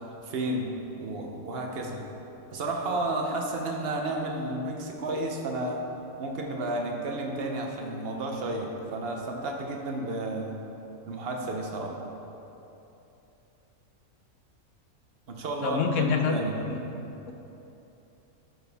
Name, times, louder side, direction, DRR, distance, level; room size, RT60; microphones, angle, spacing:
voice 1, 0.2-0.7 1.0-2.0 2.5-5.8 6.2-10.6 11.1-11.9 15.3-16.6, right 2 dB, 50° right, 1 dB, 1.0 m, -32 dB
voice 2, 15.6-16.4 16.7-16.8, left 6 dB, 70° left, 4 dB, 1.0 m, -26 dB
11.0 x 6.4 x 3.5 m, 3.0 s
omnidirectional pair, 1.4 m